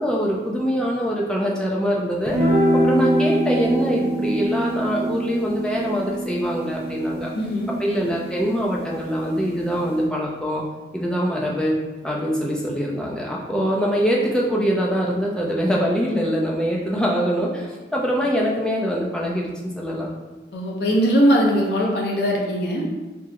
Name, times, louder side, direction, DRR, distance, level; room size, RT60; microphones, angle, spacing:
voice 1, 0.0-2.4 2.7-7.3 7.8-10.6 10.9-11.8 12.0-20.1, equal, 5° left, -3 dB, 0.4 m, -23 dB
sound 1, 2.3-8.8, right 1 dB, 35° right, 0.9 m, -24 dB
voice 2, 7.3-7.7 20.5-22.8, equal, 75° left, -2 dB, 0.7 m, -20 dB
3.5 x 2.0 x 2.8 m, 1.2 s
head